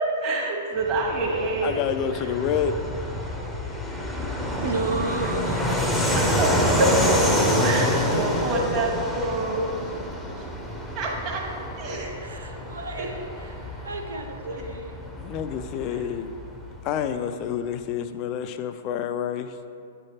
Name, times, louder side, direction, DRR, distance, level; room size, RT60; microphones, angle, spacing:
voice 1, 0.2-1.8 6.1-6.5 6.8-6.9 7.6-9.7 10.9-11.4 11.8-12.1 13.0-13.1 14.4-14.5 15.9-16.0, right 2 dB, 35° right, -2 dB, 1.3 m, -27 dB
Fixed-wing aircraft airplane, 0.8-17.0, equal, ahead, 0.7 m, -27 dB
voice 2, 1.6-2.8 15.2-16.3 16.8-19.5, left 9 dB, 40° left, 9 dB, 0.4 m, -28 dB
voice 3, 4.4-7.4 12.2-15.0, right 3 dB, 85° right, 3 dB, 0.7 m, -33 dB
8.9 x 3.3 x 4.2 m, 2.5 s
hypercardioid pair, 120°, 0 cm